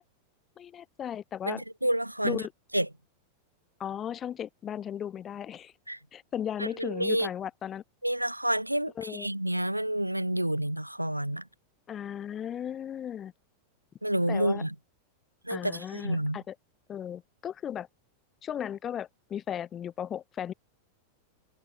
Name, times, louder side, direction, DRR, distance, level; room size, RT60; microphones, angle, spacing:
voice 1, 0.6-1.6 2.2-2.5 3.8-5.7 6.1-7.8 9.0-9.3 11.9-13.3 14.3-14.6 15.5-16.5 16.9-17.9 18.4-20.5, left 9 dB, 25° left, 1.4 m, -36 dB
voice 2, 1.4-2.5 2.7-2.9 5.9-6.0 6.6-7.3 8.0-11.4 14.0-14.7 15.4-16.4, right 1 dB, 90° right, 0.3 m, -29 dB
open air
figure-of-eight pair, 90°, 0 cm